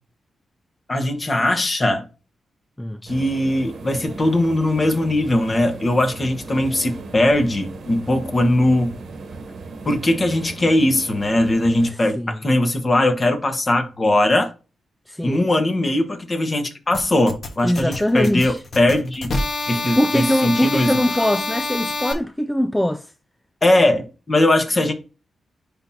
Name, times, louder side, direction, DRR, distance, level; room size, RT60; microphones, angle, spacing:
voice 1, 0.9-2.1 3.0-9.0 9.8-14.5 15.2-19.3 19.7-21.0 23.6-24.9, left 1 dB, 30° left, 1.4 m, -20 dB
sound 1, 3.1-11.9, right 3 dB, 65° right, 1.1 m, -37 dB
voice 2, 11.9-12.4 15.1-15.5 17.6-18.6 19.9-23.1, equal, 5° left, 0.3 m, -22 dB
sound 2, 16.9-22.1, left 2 dB, 55° left, 1.4 m, -27 dB
10.0 x 3.7 x 2.8 m
cardioid pair, 105°, 0 cm